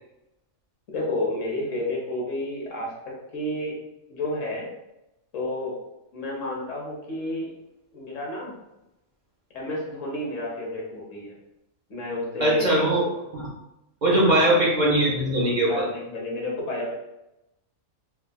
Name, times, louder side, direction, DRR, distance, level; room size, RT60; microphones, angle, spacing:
voice 1, 0.9-3.8 4.1-4.7 5.3-5.8 6.1-7.5 7.9-8.5 9.5-11.4 11.9-12.8 14.2-14.5 15.5-16.9, left 1 dB, 70° left, -3 dB, 1.3 m, -30 dB
voice 2, 12.4-13.5 14.0-15.9, right 1 dB, 45° right, -4 dB, 0.7 m, -21 dB
4.4 x 2.2 x 2.2 m, 0.91 s
omnidirectional pair, 1.4 m